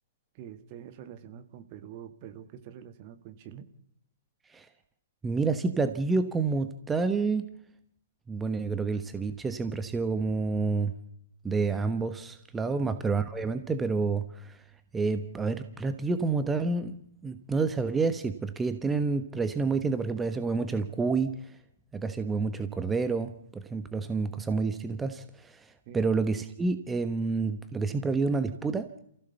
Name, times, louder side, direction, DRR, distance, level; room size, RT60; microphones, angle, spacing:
voice 1, 0.3-3.7 12.6-12.8 25.9-26.0, right 9 dB, 40° right, 10 dB, 1.9 m, -46 dB
voice 2, 5.2-7.5 8.3-10.9 11.4-14.6 14.9-16.9 17.2-21.6 21.9-29.0, right 4 dB, 10° right, 10 dB, 1.2 m, -29 dB
28.5 x 15.5 x 6.9 m, 0.72 s
figure-of-eight pair, 120°, 0 cm